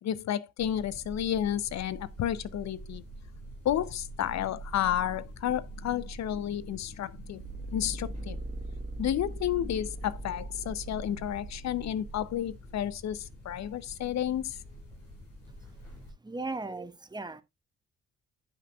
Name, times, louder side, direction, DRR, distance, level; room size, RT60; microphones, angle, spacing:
voice 1, 0.0-3.0 3.6-7.4 7.7-8.4 9.0-14.6, left 11 dB, 50° left, 0.7 m, -31 dB
sound 1, 0.6-16.1, right 1 dB, 75° left, 4.1 m, -46 dB
sound 2, 7.4-12.3, right 2 dB, 35° right, 1.4 m, -40 dB
voice 2, 16.2-17.4, right 3 dB, 10° right, 1.1 m, -37 dB
16.0 x 5.8 x 2.4 m
figure-of-eight pair, 40°, 36 cm